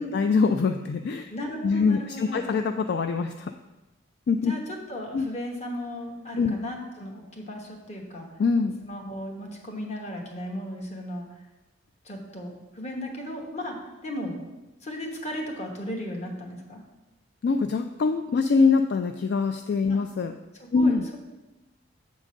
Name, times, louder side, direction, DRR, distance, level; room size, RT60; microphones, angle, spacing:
voice 1, 0.0-1.3 1.6-3.5 4.3-4.5 5.1-5.3 6.4-6.6 8.4-8.8 17.4-20.3 20.7-21.1, left 4 dB, 55° left, 7 dB, 0.3 m, -24 dB
voice 2, 1.3-2.5 4.4-8.3 8.8-11.3 12.0-13.8 14.0-14.4 14.8-16.8 19.9-20.0 20.6-21.2, equal, 35° left, 1 dB, 1.2 m, -35 dB
7.5 x 3.8 x 6.1 m, 1.1 s
head